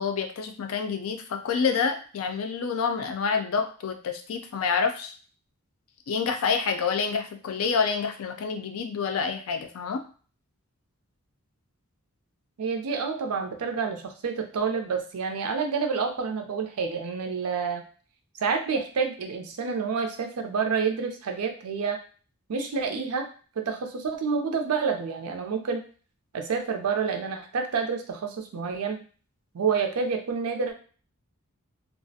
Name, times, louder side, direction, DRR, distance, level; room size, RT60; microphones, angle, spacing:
voice 1, 0.0-5.1 6.1-10.0, left 5 dB, 70° left, 6 dB, 0.4 m, -28 dB
voice 2, 12.6-17.8 18.4-22.0 22.5-23.3 23.6-25.8 26.3-29.0 29.5-30.7, right 5 dB, 85° right, 5 dB, 0.5 m, -28 dB
2.3 x 2.0 x 2.6 m, 0.40 s
head